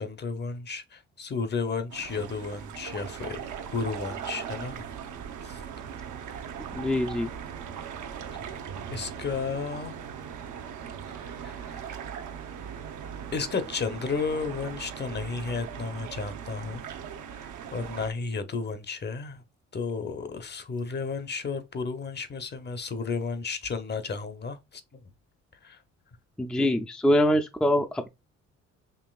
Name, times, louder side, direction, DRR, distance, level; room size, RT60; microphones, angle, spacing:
voice 1, 0.0-4.8 5.4-5.6 8.9-10.0 11.2-11.9 13.3-16.9 17.3-19.4 19.7-25.0 25.6-25.8, left 4 dB, 35° left, 0.7 m, -33 dB
sound 1, 1.9-18.1, right 8 dB, 75° right, 0.8 m, -39 dB
voice 2, 6.7-7.3 26.4-28.1, left 1 dB, 5° left, 0.4 m, -24 dB
5.3 x 2.8 x 2.3 m
cardioid pair, 90°, 30 cm